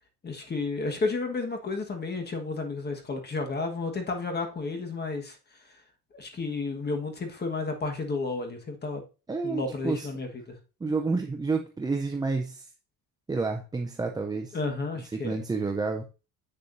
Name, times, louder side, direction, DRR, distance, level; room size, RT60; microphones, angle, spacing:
voice 1, 0.2-5.4 6.1-9.0 9.4-10.6 14.5-15.4, left 3 dB, 25° left, 4 dB, 1.4 m, -32 dB
voice 2, 9.3-10.1 10.8-12.7 13.3-14.6 15.1-16.0, right 4 dB, 10° right, 3 dB, 0.4 m, -29 dB
8.1 x 6.7 x 2.6 m, 0.32 s
cardioid pair, 140°, 36 cm